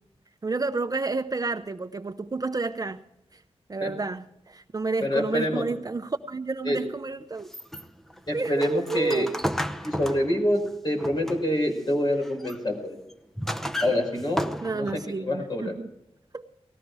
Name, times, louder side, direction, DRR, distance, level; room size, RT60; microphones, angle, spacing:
voice 1, 0.4-3.0 3.7-7.5 8.3-9.4 14.6-15.9 16.3-16.4, right 3 dB, 35° right, 0.7 m, -30 dB
voice 2, 5.0-5.6 6.7-6.8 8.3-9.3 9.8-13.0 13.8-14.5 14.7-15.8, left 1 dB, 40° left, 5.3 m, -26 dB
sound 1, 7.4-11.7 12.1-12.6 13.1-15.1, equal, 5° left, 0.8 m, -33 dB
19.0 x 14.5 x 4.8 m
wide cardioid pair, 110°, 11 cm